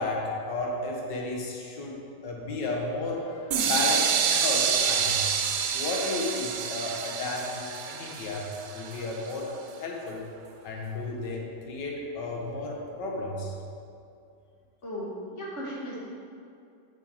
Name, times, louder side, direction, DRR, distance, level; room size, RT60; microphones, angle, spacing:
voice 1, 0.0-5.3 5.7-9.5 9.8-10.3 10.6-13.5, left 2 dB, 85° left, -1 dB, 1.8 m, -33 dB
sound 1, 3.5-9.3, right 7 dB, 80° right, 1.3 m, -28 dB
voice 2, 14.8-16.0, equal, 45° left, -6 dB, 2.2 m, -36 dB
7.4 x 6.7 x 4.7 m, 2.5 s
omnidirectional pair, 1.8 m